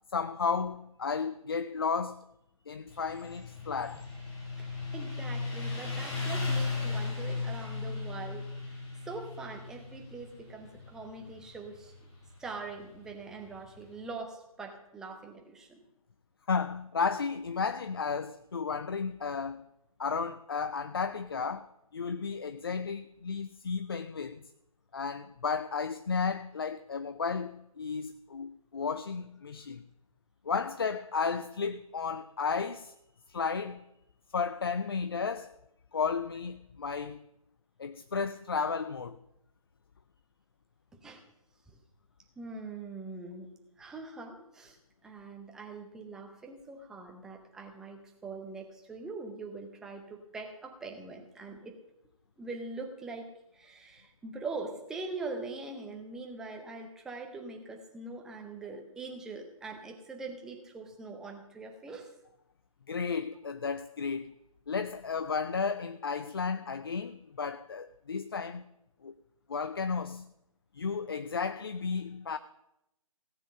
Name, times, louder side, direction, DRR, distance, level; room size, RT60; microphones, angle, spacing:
voice 1, 0.1-2.2 2.7-4.1 16.5-19.6 20.0-24.4 24.9-29.8 30.4-32.9 33.3-33.8 34.3-35.5 35.9-37.2 37.8-39.2 62.9-64.3 64.7-68.7 69.0-69.1 69.5-70.3 70.7-72.4, left 5 dB, 40° left, 0.5 m, -33 dB
Motorcycle, 2.9-14.0, left 3 dB, 15° left, 2.7 m, -37 dB
voice 2, 4.6-11.9 12.4-15.8 40.9-41.2 42.4-44.8 45.0-51.7 52.4-62.1, right 3 dB, 5° right, 0.8 m, -43 dB
16.5 x 7.5 x 6.5 m
figure-of-eight pair, 145°, 19 cm